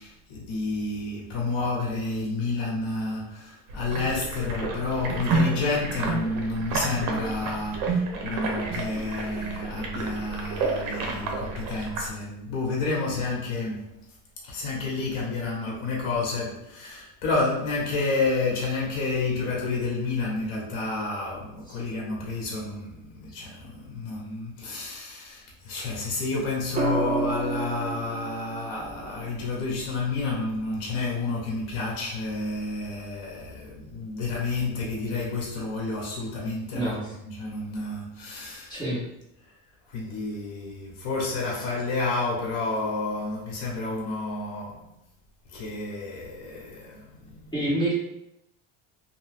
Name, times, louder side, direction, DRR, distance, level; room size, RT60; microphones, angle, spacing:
voice 1, 0.0-13.9 14.4-38.7 39.9-44.9 45.5-47.5, left 3 dB, 80° left, 1.1 m, -30 dB
sound 1, 3.7-12.1, right 3 dB, 55° right, 0.7 m, -30 dB
sound 2, 26.8-30.9 32.6-33.0, right 3 dB, 20° right, 0.4 m, -32 dB
voice 2, 36.7-37.1 38.7-39.0 47.5-47.9, right 1 dB, 10° left, 1.2 m, -27 dB
2.7 x 2.2 x 3.3 m
cardioid pair, 125°, 39 cm